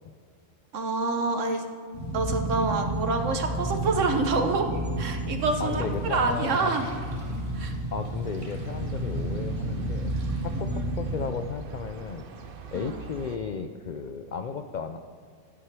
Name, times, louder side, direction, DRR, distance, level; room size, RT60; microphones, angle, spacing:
voice 1, 0.7-1.7 2.1-4.7 5.0-6.9 7.5-7.7 10.6-10.8 12.7-12.9, right 3 dB, 70° right, 5 dB, 1.4 m, -27 dB
sound 1, 1.9-11.3, right 1 dB, 90° right, 2.7 m, -31 dB
sound 2, 5.4-10.6, equal, 25° right, 1.6 m, -50 dB
voice 2, 5.6-6.7 7.9-12.3 12.7-15.0, left 5 dB, 70° left, 8 dB, 0.4 m, -34 dB
sound 3, 8.2-13.4, right 4 dB, 50° right, 0.8 m, -44 dB
12.0 x 7.9 x 4.7 m, 2.2 s
omnidirectional pair, 1.3 m